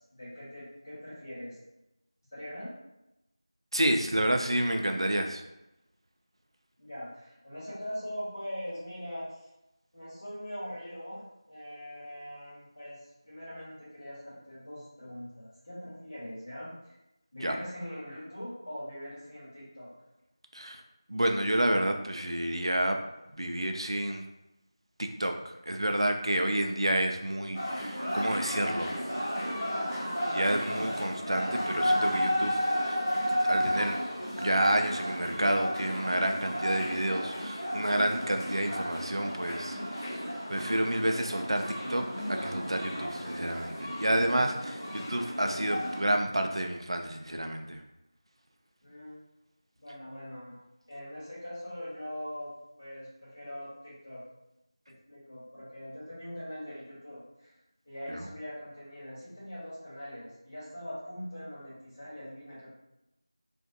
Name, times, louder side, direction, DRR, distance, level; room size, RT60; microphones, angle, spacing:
voice 1, 0.1-1.6 2.3-2.7 6.8-9.5 9.9-17.0 17.3-19.9 48.8-49.2 49.8-50.5 50.9-52.5 52.8-54.2 55.1-57.5 57.8-62.7, equal, 35° left, -10 dB, 1.3 m, -42 dB
voice 2, 3.7-5.4 17.4-17.6 20.5-20.8 21.1-23.0 23.4-24.3 25.0-29.1 30.3-32.6 32.8-33.0 33.3-34.0 34.3-40.2 40.5-47.8 58.1-58.3, right 1 dB, 75° right, 5 dB, 0.3 m, -29 dB
sound 1, 27.5-46.0, equal, 5° left, 0.6 m, -33 dB
2.5 x 2.3 x 2.5 m, 0.90 s
figure-of-eight pair, 175°, 3 cm